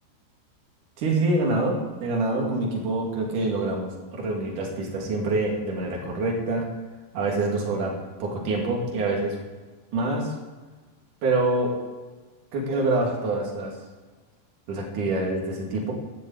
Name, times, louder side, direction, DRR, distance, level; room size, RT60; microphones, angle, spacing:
voice 1, 1.0-6.7 7.1-9.4 9.9-10.3 11.2-11.8 12.5-13.7 14.7-15.9, right 2 dB, 45° right, 0 dB, 3.3 m, -26 dB
16.0 x 7.0 x 8.6 m, 1.3 s
omnidirectional pair, 5.9 m